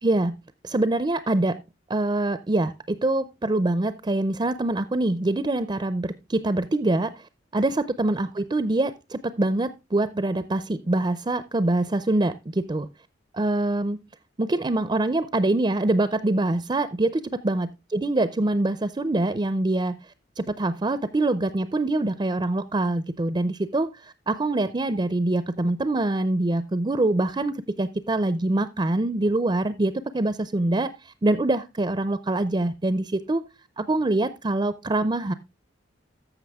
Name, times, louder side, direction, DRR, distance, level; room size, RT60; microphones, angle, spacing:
voice 1, 0.0-0.3 0.6-1.6 1.9-7.2 7.5-12.9 13.3-14.0 14.4-20.0 20.4-33.4 33.8-35.3, right 2 dB, 25° right, 13 dB, 0.5 m, -24 dB
14.0 x 6.2 x 3.5 m, 0.25 s
head